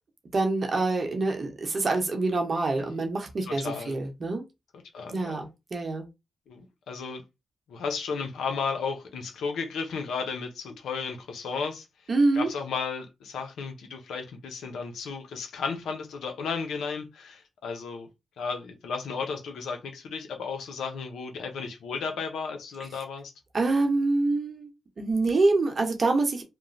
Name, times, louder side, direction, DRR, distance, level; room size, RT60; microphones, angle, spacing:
voice 1, 0.3-4.4 5.1-5.4 5.7-6.1 12.1-12.5 23.5-24.7 25.0-26.4, right 3 dB, 45° right, 0.8 m, -25 dB
voice 2, 3.5-4.0 4.9-5.4 6.5-7.2 7.7-11.8 12.3-18.1 18.4-23.3, left 5 dB, 85° left, 0.6 m, -34 dB
3.0 x 2.1 x 2.5 m
cardioid pair, 80°, 0 cm